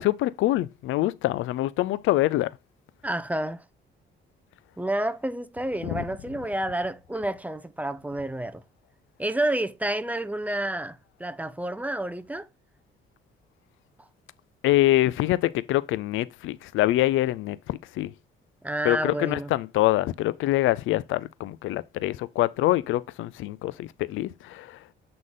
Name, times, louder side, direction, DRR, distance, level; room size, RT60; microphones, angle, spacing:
voice 1, 0.0-2.5 5.8-6.0 14.6-18.1 18.8-24.8, left 16 dB, 80° left, 0.4 m, -25 dB
voice 2, 3.0-3.6 4.8-8.6 9.2-12.5 18.6-19.5, right 1 dB, 5° right, 0.6 m, -29 dB
7.6 x 3.8 x 3.7 m
cardioid pair, 90°, 20 cm